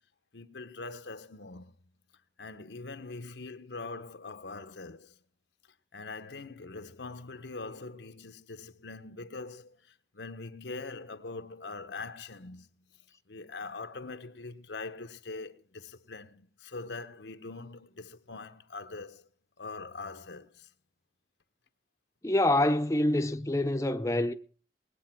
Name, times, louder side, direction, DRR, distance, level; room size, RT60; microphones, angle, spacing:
voice 1, 0.3-1.7 2.4-5.2 5.9-19.3 19.6-20.7, left 3 dB, 90° left, 1.1 m, -43 dB
voice 2, 22.2-24.3, left 1 dB, 15° left, 0.6 m, -26 dB
20.0 x 8.6 x 6.0 m
head